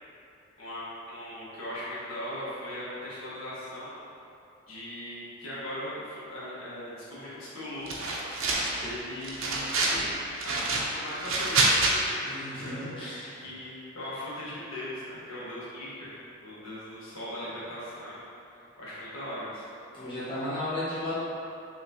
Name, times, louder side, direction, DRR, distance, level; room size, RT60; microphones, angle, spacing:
voice 1, 0.6-4.0 4.7-8.2 8.7-13.0 13.4-16.1 16.4-18.3 18.5-19.6, left 1 dB, 90° left, -10 dB, 1.4 m, -39 dB
sound 1, 7.9-8.9 9.2-10.0 10.4-11.9, right 3 dB, 80° right, 0.6 m, -27 dB
voice 2, 12.2-13.4 19.9-21.1, left 1 dB, 25° left, -11 dB, 1.1 m, -34 dB
5.7 x 3.1 x 2.8 m, 2.8 s
head